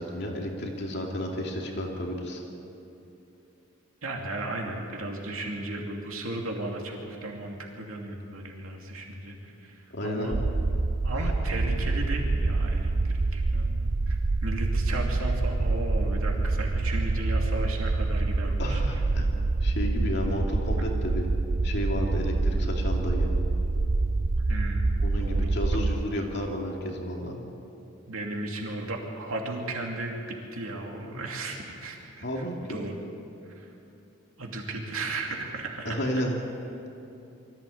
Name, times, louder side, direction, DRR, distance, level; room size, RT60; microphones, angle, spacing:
voice 1, 0.0-2.4 9.9-10.4 18.6-19.3 19.6-21.3 21.6-23.3 25.0-27.4 32.2-32.8 35.8-36.4, equal, 55° left, 0 dB, 2.7 m, -32 dB
voice 2, 4.0-10.4 11.0-18.8 24.5-25.8 27.2-27.5 28.1-33.0 33.5-33.7 34.4-36.0, right 2 dB, 85° right, 0 dB, 2.7 m, -35 dB
sound 1, 10.3-26.1, right 3 dB, 35° right, 0.5 m, -26 dB
23.5 x 15.0 x 8.6 m, 2.8 s
head